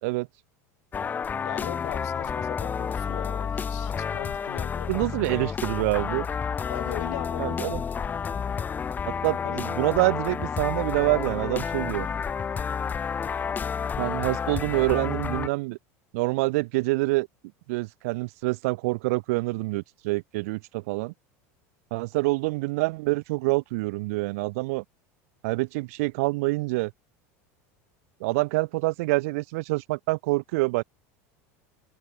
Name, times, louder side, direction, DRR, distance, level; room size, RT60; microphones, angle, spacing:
sound 1, 0.9-15.5, left 6 dB, 20° left, 1.1 m, -30 dB
voice 1, 1.4-5.1 6.7-7.6 9.4-9.6, left 20 dB, 80° left, 2.2 m, -39 dB
voice 2, 4.9-6.3 7.4-7.8 9.1-12.1 14.0-15.8 16.1-17.3 17.7-21.1 21.9-24.8 25.4-26.9 28.2-30.8, right 24 dB, 75° right, 0.7 m, -26 dB
supercardioid pair, 130°, 8 cm